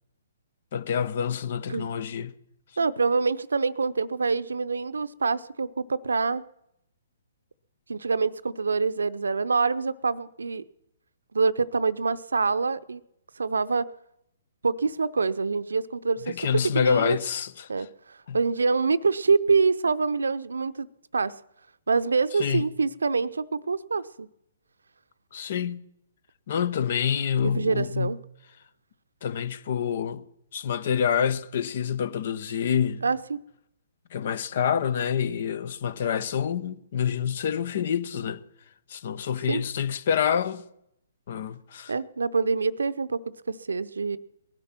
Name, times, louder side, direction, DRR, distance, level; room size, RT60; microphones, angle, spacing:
voice 1, 0.7-2.3 16.3-17.9 18.3-18.4 22.4-22.7 25.3-25.8 26.5-28.2 29.2-30.2 30.5-33.0 34.1-38.4 38.9-40.6 41.3-41.9, left 8 dB, 55° left, 1.0 m, -27 dB
voice 2, 2.8-6.4 7.9-10.6 11.3-13.0 13.4-13.9 14.6-16.4 16.7-17.2 17.7-20.9 21.1-21.3 21.9-24.3 27.4-28.2 33.0-33.4 39.5-39.6 41.9-44.2, right 4 dB, 80° right, 0.7 m, -26 dB
19.5 x 11.5 x 6.1 m
figure-of-eight pair, 130°, 0 cm